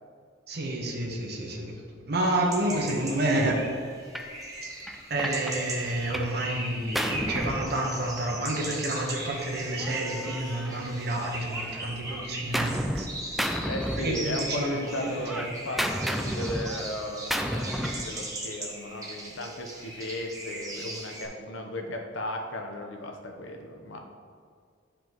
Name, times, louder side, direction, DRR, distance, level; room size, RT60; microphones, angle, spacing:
voice 1, 0.5-1.8 2.1-3.6 5.1-13.1 13.9-15.4, right 1 dB, 55° right, 0 dB, 1.1 m, -29 dB
sound 1, 2.2-21.3, right 1 dB, 20° right, 1.1 m, -39 dB
Gunshot gunfire, 4.1-4.3 4.9-6.4 6.7-8.4 9.3-11.1 11.5-13.1 13.4-14.6 14.9-18.1, equal, ahead, 0.3 m, -33 dB
voice 2, 13.7-24.0, left 1 dB, 75° left, 3 dB, 0.9 m, -35 dB
10.0 x 5.0 x 3.0 m, 2.1 s
head